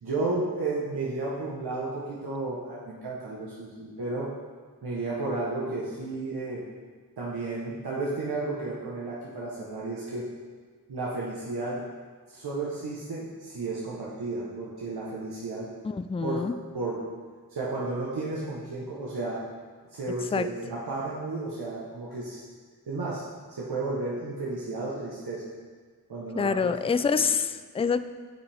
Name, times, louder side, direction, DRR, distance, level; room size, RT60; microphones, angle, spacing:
voice 1, 0.0-4.3 4.8-6.6 7.2-10.3 10.9-11.8 12.3-15.7 16.2-16.5 16.7-17.0 17.5-19.4 19.9-22.4 22.9-23.2 23.5-25.5 26.1-26.7 27.0-27.3, right 2 dB, 90° right, -6 dB, 1.1 m, -33 dB
voice 2, 15.8-16.5 20.3-20.5 26.4-28.0, left 5 dB, 15° left, 11 dB, 0.3 m, -26 dB
9.6 x 6.1 x 3.4 m, 1.5 s
cardioid pair, 40°, 37 cm